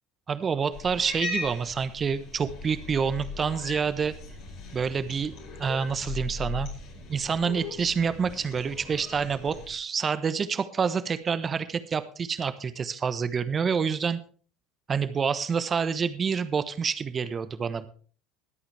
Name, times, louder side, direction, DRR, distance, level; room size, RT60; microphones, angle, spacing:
voice 1, 0.3-4.1 4.7-5.3 5.6-6.7 7.1-14.2 14.9-17.9, right 6 dB, 30° right, 13 dB, 1.1 m, -27 dB
Cat, 0.7-9.7, left 3 dB, 60° left, 4.9 m, -39 dB
20.5 x 8.6 x 3.4 m, 0.42 s
hypercardioid pair, 75°, 0 cm